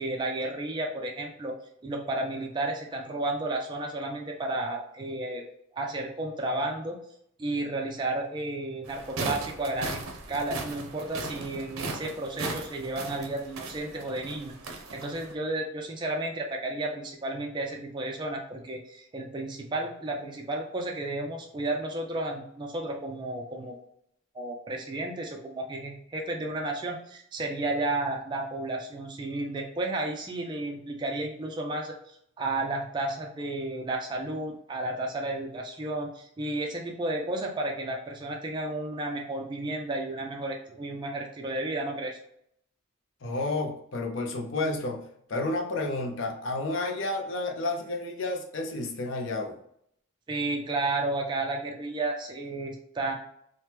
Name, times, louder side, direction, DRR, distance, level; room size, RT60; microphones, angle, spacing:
voice 1, 0.0-1.5 1.8-5.5 5.7-7.0 7.4-10.0 10.3-23.8 24.3-42.2 50.3-53.1, right 2 dB, 20° right, 0 dB, 0.3 m, -32 dB
sound 1, 8.8-15.3, right 3 dB, 85° right, 0.5 m, -37 dB
voice 2, 43.2-49.6, left 2 dB, 65° left, 2 dB, 0.5 m, -31 dB
2.9 x 2.0 x 3.3 m, 0.69 s
head